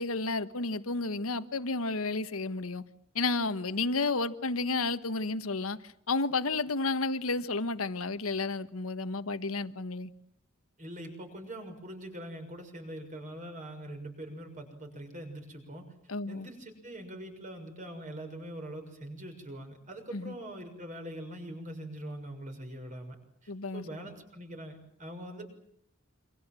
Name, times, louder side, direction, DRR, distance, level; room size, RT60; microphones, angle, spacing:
voice 1, 0.0-2.8 3.1-10.1 16.1-16.5 20.1-20.3 23.5-23.8, left 3 dB, 90° left, 1.5 m, -31 dB
voice 2, 10.8-15.9 16.3-23.2 23.4-25.5, right 1 dB, 40° right, 6.5 m, -43 dB
28.0 x 25.5 x 7.7 m
head